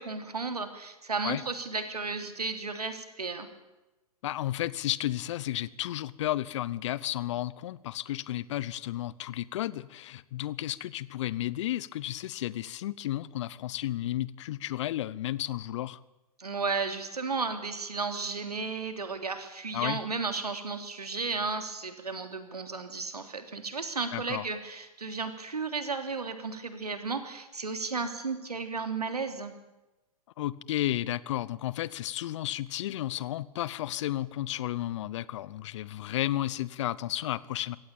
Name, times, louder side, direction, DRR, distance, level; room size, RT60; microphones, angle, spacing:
voice 1, 0.0-3.5 16.4-29.5, right 4 dB, 80° right, 7 dB, 3.2 m, -34 dB
voice 2, 4.2-16.0 19.7-20.0 24.1-24.4 30.4-37.8, left 14 dB, 50° left, 20 dB, 0.9 m, -33 dB
24.0 x 17.5 x 8.9 m, 1.0 s
figure-of-eight pair, 110°, 19 cm